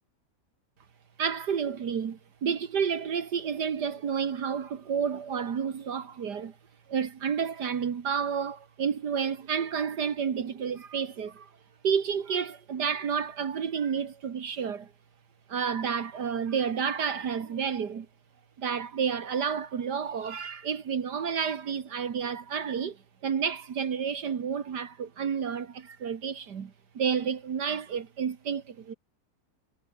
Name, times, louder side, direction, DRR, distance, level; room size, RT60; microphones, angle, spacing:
voice 1, 1.2-6.6 6.9-11.5 11.8-14.9 15.5-18.1 18.6-28.9, right 7 dB, 75° right, 2.2 m, -30 dB
omnidirectional pair, 1.8 m